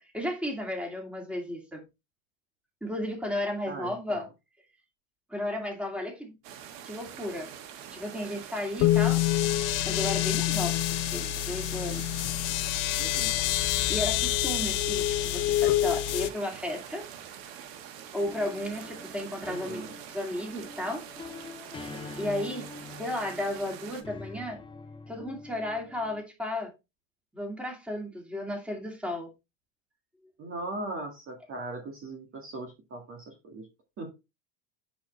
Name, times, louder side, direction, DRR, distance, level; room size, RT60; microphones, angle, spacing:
voice 1, 0.0-1.8 2.8-4.2 5.3-6.3 6.8-7.5 7.9-9.2 9.8-12.0 13.9-17.1 18.1-19.8 20.1-21.0 22.2-22.7 23.0-24.6 25.1-26.7 27.3-29.3, left 1 dB, 5° right, 2.4 m, -34 dB
voice 2, 3.7-4.2 8.8-9.1 13.0-13.4 19.4-19.9 30.4-33.7 34.0-34.1, right 2 dB, 30° right, 1.7 m, -39 dB
sound 1, 6.4-24.0, right 9 dB, 70° right, 1.5 m, -45 dB
sound 2, 8.8-16.3, left 14 dB, 50° left, 0.7 m, -26 dB
sound 3, 18.2-26.2, left 4 dB, 15° left, 0.5 m, -45 dB
10.0 x 4.1 x 3.2 m
supercardioid pair, 130°, 40 cm